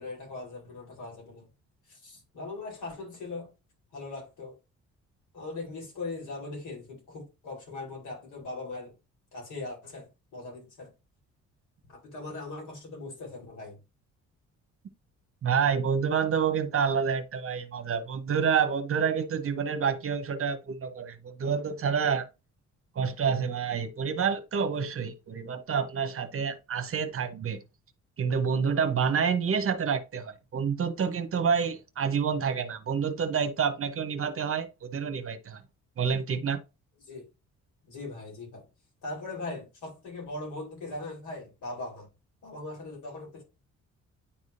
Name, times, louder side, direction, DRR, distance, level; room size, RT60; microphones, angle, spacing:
voice 1, 0.0-1.4 1.9-3.5 3.9-4.5 5.3-8.9 9.3-10.9 11.9-13.8 37.1-37.3 37.8-38.7 39.0-42.1 42.4-43.4, left 2 dB, 80° left, 3.8 m, -40 dB
voice 2, 15.4-22.3 23.0-27.6 28.2-35.6 36.0-36.6, right 6 dB, 45° right, 0.9 m, -28 dB
10.0 x 3.6 x 2.7 m
cardioid pair, 90°, 30 cm